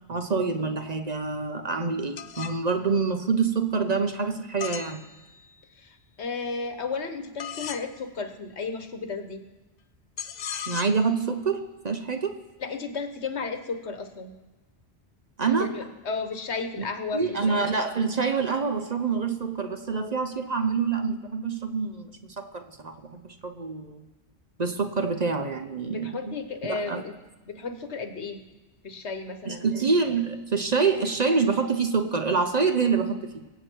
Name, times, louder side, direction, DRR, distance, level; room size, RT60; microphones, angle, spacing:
voice 1, 0.1-5.1 10.7-12.3 15.4-15.7 16.8-16.9 17.1-24.0 24.6-26.3 26.7-27.0 29.5-33.5, right 4 dB, 40° right, 7 dB, 0.8 m, -26 dB
sound 1, 2.2-2.6 4.6-5.6 7.4-7.9 10.2-11.1, left 8 dB, 55° left, 0.5 m, -37 dB
voice 2, 6.2-9.4 12.6-14.3 15.6-17.6 25.9-27.1 27.4-28.4 28.8-29.6, left 4 dB, 75° left, 7 dB, 1.4 m, -33 dB
23.0 x 8.0 x 4.5 m, 1.2 s
omnidirectional pair, 1.1 m